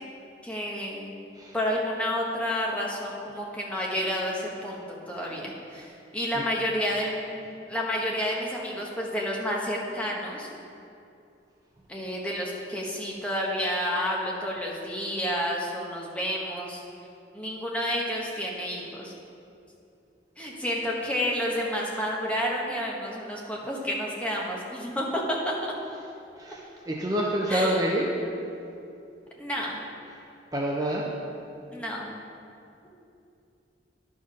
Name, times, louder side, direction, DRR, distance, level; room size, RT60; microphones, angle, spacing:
voice 1, 0.4-1.2 1.5-5.9 6.1-10.5 11.9-16.8 17.3-19.1 20.4-25.5 27.5-27.9 29.4-29.8 31.7-32.2, equal, 5° left, -3 dB, 1.1 m, -30 dB
voice 2, 26.9-28.1 30.5-31.0, right 1 dB, 20° right, -3 dB, 0.6 m, -27 dB
11.0 x 4.8 x 5.8 m, 2.6 s
head